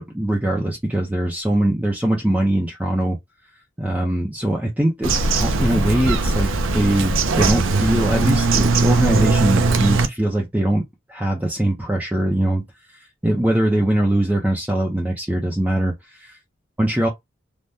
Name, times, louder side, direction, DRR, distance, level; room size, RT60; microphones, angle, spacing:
voice 1, 0.0-3.2 3.8-5.1 5.4-12.6 12.9-16.4 16.8-17.1, right 1 dB, 10° right, 0.6 m, -21 dB
Bird vocalization bird call bird song, 5.0-10.1, right 3 dB, 90° right, 0.5 m, -19 dB
3.4 x 2.2 x 2.6 m
head